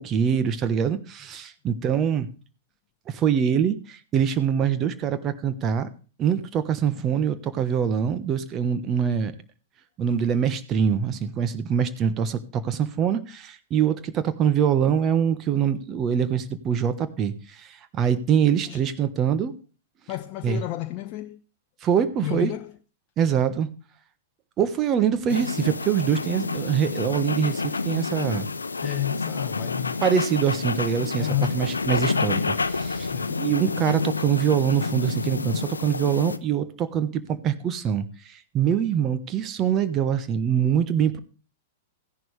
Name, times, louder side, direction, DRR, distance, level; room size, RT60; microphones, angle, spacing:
voice 1, 0.0-2.3 3.1-5.9 6.2-9.3 10.0-19.5 20.4-20.6 21.8-22.5 23.2-23.7 24.6-28.5 30.0-33.1 33.4-41.2, right 8 dB, 30° right, 1.2 m, -24 dB
voice 2, 20.1-21.4 22.2-22.7 28.8-30.0 31.2-31.7 33.1-33.4, left 14 dB, 40° left, 0.6 m, -31 dB
sound 1, 25.3-36.4, left 4 dB, 80° left, 0.7 m, -28 dB
15.0 x 10.5 x 3.3 m
figure-of-eight pair, 100°, 0 cm